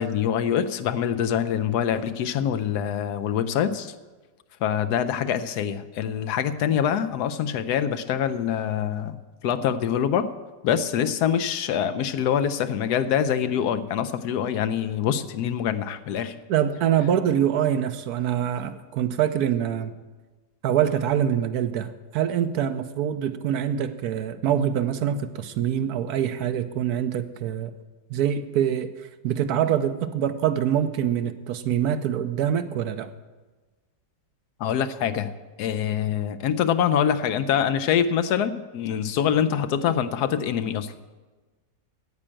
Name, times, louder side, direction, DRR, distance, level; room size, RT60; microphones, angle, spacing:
voice 1, 0.0-3.9 4.6-10.3 10.6-16.3 34.6-35.3 35.6-40.9, left 9 dB, 75° left, 10 dB, 1.1 m, -25 dB
voice 2, 16.5-19.9 20.6-27.7 28.1-33.1, right 9 dB, 70° right, 11 dB, 1.0 m, -25 dB
9.7 x 8.8 x 8.8 m, 1.3 s
omnidirectional pair, 1.8 m